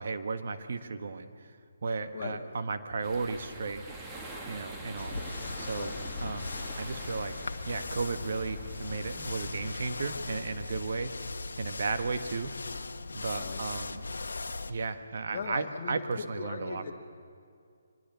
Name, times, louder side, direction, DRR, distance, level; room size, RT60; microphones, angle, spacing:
voice 1, 0.0-1.5 1.8-3.9 4.5-5.2 5.6-5.9 6.2-11.1 11.6-12.5 13.1-14.1 14.7-16.9, right 4 dB, 60° right, 8 dB, 1.4 m, -34 dB
sound 1, 3.0-9.7, right 2 dB, 15° right, 2.4 m, -44 dB
sound 2, 5.0-14.7, left 3 dB, 75° left, 1.1 m, -39 dB
voice 2, 15.3-16.9, left 5 dB, 40° left, -1 dB, 1.8 m, -39 dB
23.0 x 21.0 x 6.9 m, 2.3 s
figure-of-eight pair, 150°, 0 cm